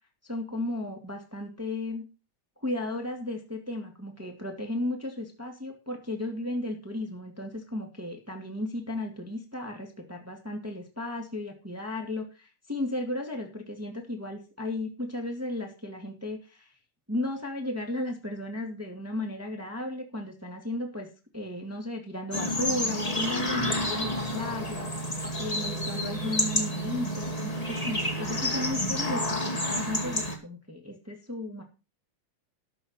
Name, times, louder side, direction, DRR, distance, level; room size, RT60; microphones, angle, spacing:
voice 1, 0.3-2.1 2.6-16.7 17.1-21.1 21.3-24.9 25.4-31.6, left 1 dB, 5° right, 2 dB, 2.3 m, -34 dB
sound 1, 22.3-30.3, left 1 dB, 15° left, 2.0 m, -30 dB
13.5 x 5.4 x 7.6 m, 0.31 s
omnidirectional pair, 3.6 m